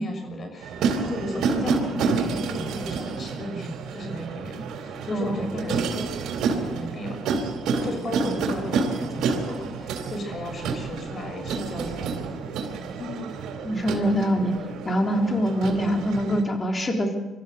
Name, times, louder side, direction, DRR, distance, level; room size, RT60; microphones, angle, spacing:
voice 1, 0.0-7.2 7.8-12.4, left 1 dB, 45° left, 5 dB, 6.1 m, -35 dB
sound 1, 0.6-16.4, right 5 dB, 80° right, 3.6 m, -29 dB
voice 2, 13.0-13.3 13.6-14.5 14.9-17.2, equal, 30° left, 3 dB, 3.9 m, -24 dB
25.5 x 14.0 x 8.2 m, 1.2 s
cardioid pair, 90°, 0 cm